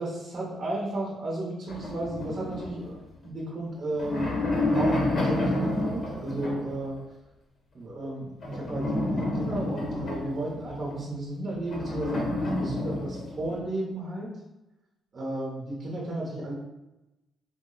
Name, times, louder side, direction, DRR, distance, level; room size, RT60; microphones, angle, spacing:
voice 1, 0.0-3.0 3.2-4.4 4.7-7.0 7.7-14.3 15.1-16.5, right 1 dB, 40° right, -3 dB, 0.8 m, -33 dB
sound 1, 1.7-3.3 3.8-6.9 8.4-11.0 11.6-13.6, left 1 dB, 45° left, 0.8 m, -29 dB
3.4 x 2.0 x 3.8 m, 0.99 s
cardioid pair, 90°, 0 cm